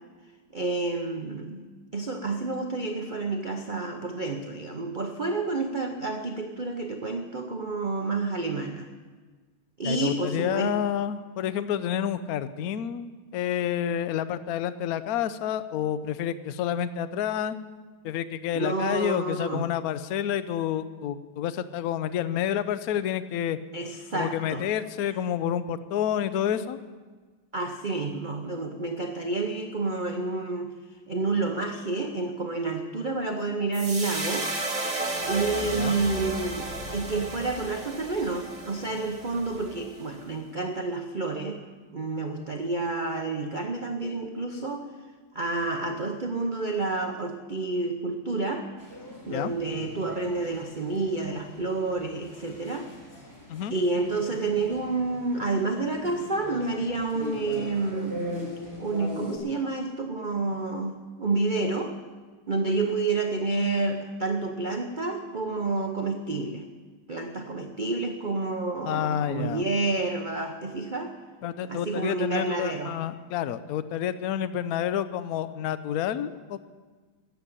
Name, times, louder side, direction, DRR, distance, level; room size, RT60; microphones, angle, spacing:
voice 1, 0.5-1.6 1.9-8.9 9.8-10.7 18.5-19.7 23.7-24.7 27.5-30.7 31.1-34.5 35.3-41.6 41.9-44.9 45.3-48.7 49.3-52.9 53.7-58.2 58.8-61.9 62.5-66.7 67.1-71.1 71.7-73.0, right 3 dB, 85° right, 4 dB, 0.4 m, -29 dB
voice 2, 9.8-17.6 18.0-23.6 24.1-26.8 35.7-36.0 49.3-49.5 53.5-53.7 68.8-69.6 71.4-76.6, left 10 dB, 75° left, 13 dB, 0.8 m, -29 dB
sound 1, 33.7-40.1, right 2 dB, 20° right, 1.8 m, -33 dB
sound 2, 48.8-59.4, equal, 30° left, 3.8 m, -41 dB
14.0 x 8.1 x 9.9 m, 1.4 s
omnidirectional pair, 2.3 m